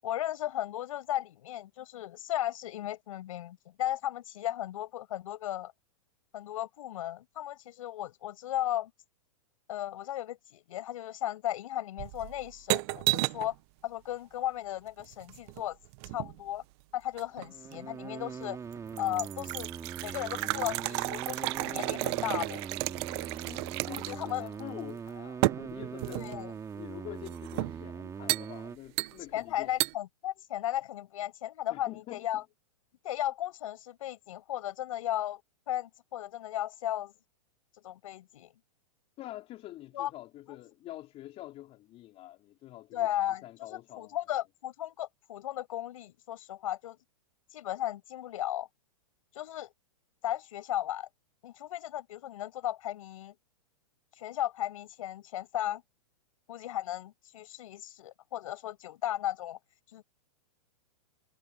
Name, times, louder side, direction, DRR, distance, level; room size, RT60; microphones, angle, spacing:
voice 1, 0.0-5.7 6.3-8.9 9.7-13.5 13.8-15.8 16.1-16.6 16.9-18.6 19.0-19.7 20.0-22.6 23.9-24.4 26.1-26.5 29.3-32.4 33.0-35.4 35.7-37.1 37.8-38.5 39.9-40.1 40.5-40.7 42.9-47.0 47.5-48.7 49.3-49.7 50.2-51.1 51.4-53.3 54.2-55.8 56.5-59.6 59.9-60.0, left 13 dB, 65° left, 6.9 m, -35 dB
sound 1, 12.0-13.5 15.0-16.4 17.2-17.8 18.3-18.4 18.7-24.3 24.6-24.7 25.4-26.4 27.3-27.8 28.3-28.5 29.0-29.4 29.8-29.9, right 25 dB, 45° right, 1.0 m, -33 dB
sound 2, 17.3-28.8, right 6 dB, 15° right, 3.8 m, -42 dB
voice 2, 23.1-26.3 26.7-29.7 31.7-32.2 39.2-43.1 43.4-44.2, left 15 dB, 35° left, 4.0 m, -46 dB
hypercardioid pair, 125°, 19 cm